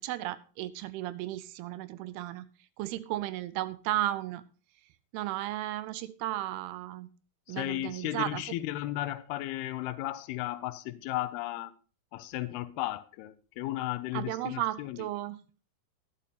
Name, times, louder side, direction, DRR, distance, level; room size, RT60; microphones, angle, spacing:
voice 1, 0.0-2.5 2.8-4.4 5.1-7.1 7.5-8.4 14.1-15.4, right 15 dB, 80° right, 2.5 m, -34 dB
voice 2, 7.5-11.7 12.1-15.0, left 15 dB, 80° left, 2.6 m, -35 dB
11.5 x 10.0 x 4.1 m
omnidirectional pair, 4.6 m